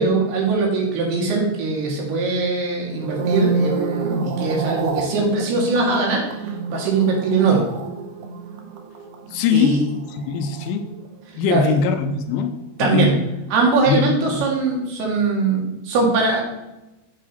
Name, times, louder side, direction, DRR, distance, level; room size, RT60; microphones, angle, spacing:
voice 1, 0.0-6.4 6.7-7.6 9.5-9.8 11.5-11.7 12.8-13.2 13.5-16.4, right 3 dB, 90° right, 0 dB, 4.1 m, -21 dB
sound 1, 2.9-11.3 11.6-12.0, right 4 dB, 70° right, 2.1 m, -28 dB
voice 2, 9.3-9.8 10.3-10.9 11.4-13.2 13.9-14.4, left 6 dB, 80° left, 8 dB, 2.5 m, -21 dB
9.1 x 8.4 x 4.2 m, 0.98 s
omnidirectional pair, 4.4 m